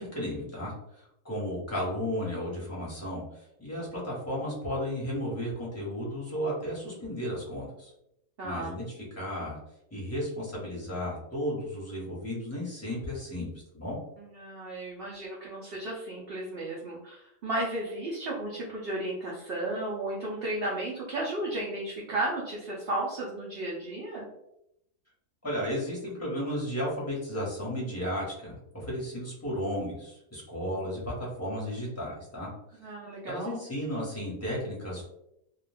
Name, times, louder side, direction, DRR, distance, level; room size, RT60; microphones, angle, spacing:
voice 1, 0.0-7.9 8.4-9.6 9.9-13.5 13.7-14.0 25.4-32.5 33.3-35.1, equal, 10° left, -6 dB, 0.9 m, -34 dB
voice 2, 8.4-8.8 14.2-24.3 32.8-33.6, right 1 dB, 60° right, -4 dB, 0.6 m, -34 dB
2.5 x 2.2 x 3.3 m, 0.81 s
omnidirectional pair, 1.6 m